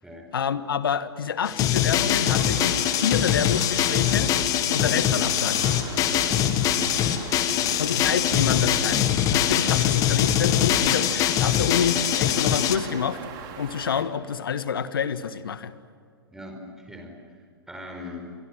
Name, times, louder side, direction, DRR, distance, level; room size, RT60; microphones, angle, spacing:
voice 1, 0.3-4.3 4.7-5.6 7.8-13.2 13.6-15.7, left 7 dB, 65° left, 13 dB, 1.5 m, -28 dB
sound 1, 1.5-12.8, left 11 dB, 25° left, 1.6 m, -23 dB
sound 2, 2.2-14.0, right 6 dB, 30° right, 3.8 m, -39 dB
Truck, 3.5-9.1, right 3 dB, 80° right, 3.9 m, -44 dB
voice 2, 16.3-17.2 17.7-18.4, left 2 dB, 5° right, 2 dB, 5.2 m, -41 dB
28.5 x 23.0 x 7.7 m, 2.2 s
figure-of-eight pair, 115°, 13 cm